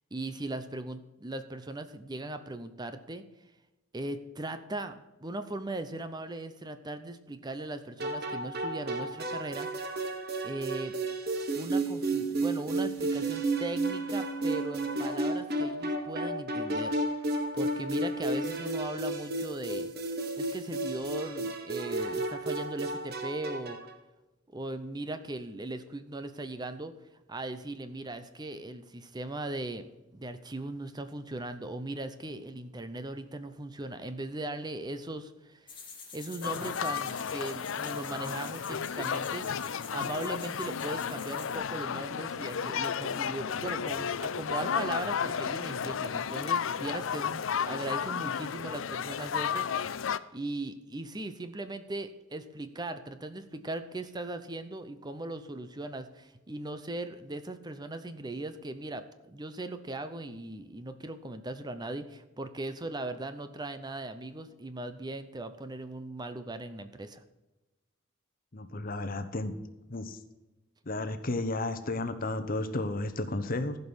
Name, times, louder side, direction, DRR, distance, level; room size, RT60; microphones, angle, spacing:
voice 1, 0.1-3.2 3.9-10.0 10.4-11.0 11.5-17.0 17.5-19.9 20.4-23.8 24.5-26.9 27.3-35.7 36.1-49.9 50.3-67.2, right 2 dB, 20° right, 10 dB, 0.7 m, -39 dB
sound 1, 8.0-23.9, right 2 dB, 50° right, 1.4 m, -32 dB
sound 2, 35.7-41.6, left 5 dB, 25° left, 2.5 m, -48 dB
sound 3, 36.4-50.2, left 7 dB, 80° left, 0.5 m, -33 dB
voice 2, 68.5-69.5 69.9-70.2 70.9-73.8, left 2 dB, 45° left, 10 dB, 1.0 m, -33 dB
15.5 x 5.4 x 6.2 m, 1.0 s
head